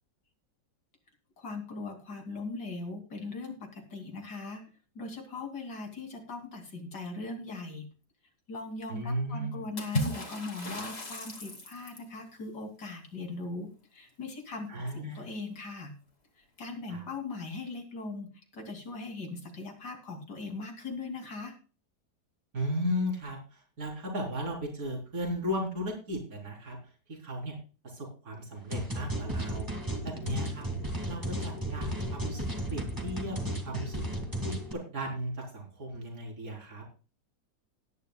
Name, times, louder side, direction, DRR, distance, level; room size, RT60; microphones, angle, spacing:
voice 1, 1.4-4.6 4.9-7.8 8.5-16.0 16.4-21.5, left 3 dB, 75° left, 4 dB, 3.3 m, -40 dB
voice 2, 8.9-9.6 14.7-15.3 16.9-17.0 22.5-26.8 27.1-27.6 27.8-29.7 30.0-30.7 31.1-34.0 34.4-36.8, equal, 55° right, 0 dB, 4.4 m, -35 dB
Water / Splash splatter, 9.8-12.1, left 1 dB, 35° left, 2.8 m, -35 dB
sound 1, 28.7-34.7, right 1 dB, 10° right, 2.2 m, -34 dB
18.0 x 10.5 x 2.3 m, 0.35 s
omnidirectional pair, 1.8 m